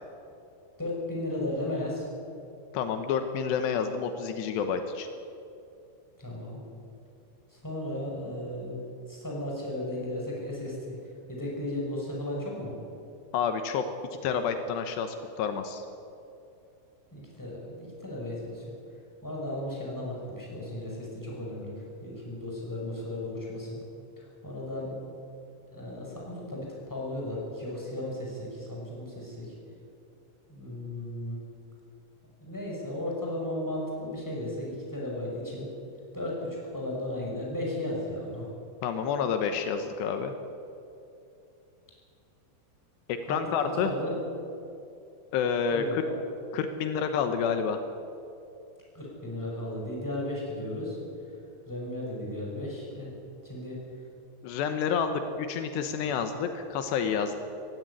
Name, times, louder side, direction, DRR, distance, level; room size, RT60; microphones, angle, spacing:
voice 1, 0.8-2.1 6.2-6.6 7.5-8.8 9.1-11.0 11.3-12.7 17.1-18.6 19.2-21.7 22.0-23.8 24.4-25.0 25.7-29.5 30.5-31.4 32.4-35.7 36.1-38.5 43.3-43.5 43.8-44.1 45.7-46.1 48.9-51.0 51.7-53.1 53.4-53.8 56.0-56.2, left 1 dB, 5° left, -4 dB, 5.7 m, -35 dB
voice 2, 2.7-5.1 13.3-13.8 14.2-15.8 38.8-40.3 43.1-43.9 45.3-46.0 46.5-47.8 54.4-57.4, left 6 dB, 80° left, 8 dB, 3.2 m, -29 dB
17.0 x 16.0 x 9.8 m, 2.6 s
omnidirectional pair, 5.0 m